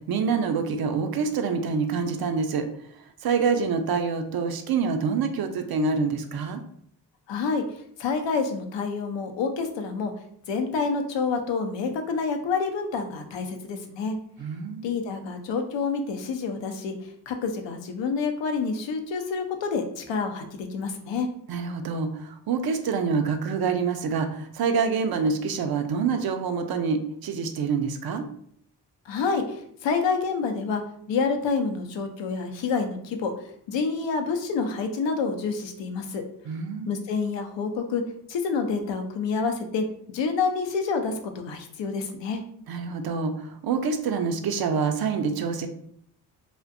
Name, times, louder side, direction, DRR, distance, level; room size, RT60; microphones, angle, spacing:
voice 1, 0.1-2.7 3.2-6.6 14.4-14.9 21.5-28.2 36.5-36.9 42.7-45.7, right 5 dB, 55° right, 7 dB, 0.5 m, -26 dB
voice 2, 7.3-7.6 8.0-10.1 10.5-14.1 14.8-16.9 17.3-21.3 29.1-29.6 29.8-30.8 31.1-33.3 33.7-36.2 36.9-38.0 38.3-39.8 40.1-42.4, left 5 dB, 75° left, 5 dB, 0.6 m, -28 dB
2.5 x 2.1 x 2.4 m, 0.65 s
supercardioid pair, 50°, 45 cm